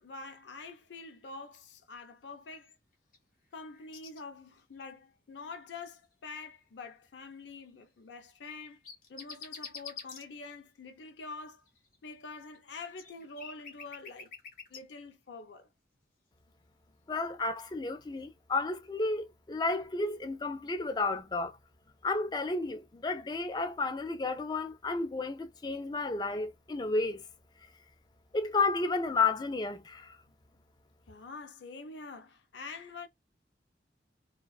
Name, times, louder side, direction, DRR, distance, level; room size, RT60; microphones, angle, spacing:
voice 1, 0.0-2.8 3.5-8.8 9.1-11.6 12.0-14.3 14.7-15.7 31.1-33.1, left 4 dB, 85° left, 0.5 m, -46 dB
sound 1, 2.6-3.2 3.5-4.2 4.6-4.8 5.7-6.0 8.4-10.2 11.7-14.8, left 6 dB, 50° left, 0.9 m, -47 dB
voice 2, 17.1-21.6 22.0-27.2 28.3-30.2, left 3 dB, 25° left, 0.4 m, -32 dB
2.4 x 2.3 x 2.2 m
head